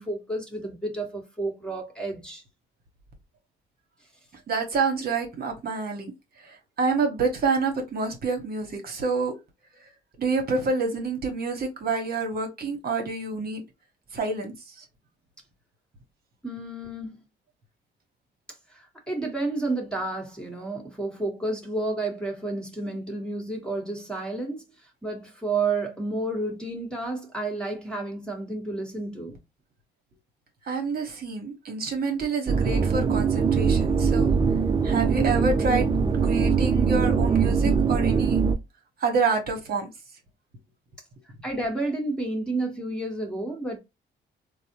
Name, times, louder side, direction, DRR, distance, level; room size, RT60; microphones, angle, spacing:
voice 1, 0.0-2.4 16.4-17.2 18.7-29.4 41.4-43.8, right 2 dB, 5° left, 1.2 m, -31 dB
voice 2, 4.5-6.1 6.4-9.3 10.2-13.6 14.1-14.8 30.7-34.3 34.8-35.9 36.2-38.4 39.0-39.9, right 4 dB, 50° right, 1.1 m, -27 dB
sound 1, 32.5-38.6, right 5 dB, 25° right, 0.4 m, -22 dB
4.0 x 2.0 x 2.8 m
cardioid pair, 90°, 20 cm